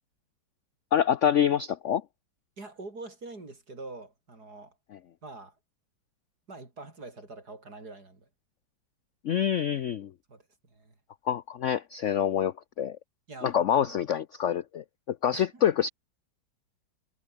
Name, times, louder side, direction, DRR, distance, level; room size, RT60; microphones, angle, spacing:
voice 1, 0.9-2.0 9.2-10.1 11.3-13.0 13.4-15.9, left 9 dB, 80° left, 0.6 m, -26 dB
voice 2, 2.6-4.8 5.2-5.6 6.5-8.3 10.3-10.9 13.3-14.0 15.3-15.6, right 3 dB, 50° right, 5.5 m, -45 dB
omnidirectional pair, 2.1 m